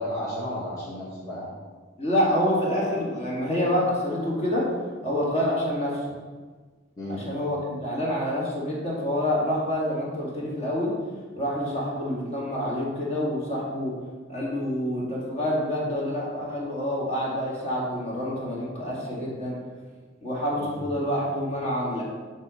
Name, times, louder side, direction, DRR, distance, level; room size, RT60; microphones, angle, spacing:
voice 1, 0.0-1.5 7.0-7.5 20.6-20.9, equal, 20° left, -10 dB, 1.6 m, -33 dB
voice 2, 2.0-4.7 5.0-6.1 7.1-10.9 11.4-13.9 14.3-19.6 20.2-22.0, equal, 35° left, -5 dB, 2.2 m, -27 dB
8.2 x 3.5 x 6.4 m, 1.4 s
head